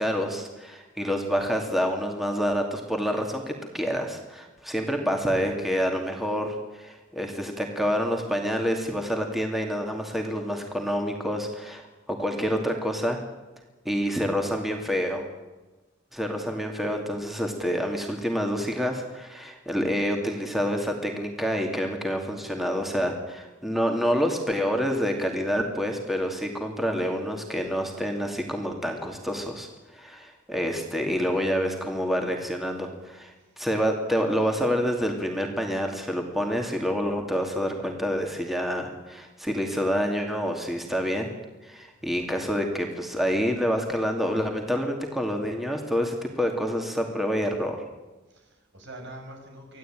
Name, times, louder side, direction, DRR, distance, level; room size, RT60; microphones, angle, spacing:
voice 1, 0.0-13.2 13.8-15.2 16.1-41.3 41.6-47.8, equal, ahead, 2 dB, 2.5 m, -27 dB
voice 2, 42.0-42.3 48.3-49.8, right 1 dB, 60° right, 3 dB, 6.3 m, -45 dB
25.5 x 16.0 x 9.2 m, 1.2 s
head